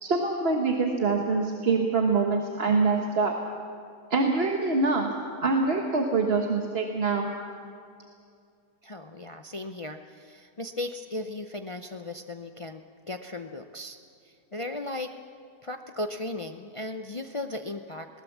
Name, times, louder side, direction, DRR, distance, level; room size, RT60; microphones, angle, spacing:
voice 1, 0.0-3.3 4.1-5.1 5.4-7.3, right 4 dB, 45° right, 2 dB, 1.4 m, -25 dB
voice 2, 8.8-14.0 14.2-15.1 15.6-18.1, left 2 dB, 55° left, 6 dB, 0.3 m, -36 dB
20.5 x 18.5 x 7.2 m, 2.4 s
omnidirectional pair, 1.6 m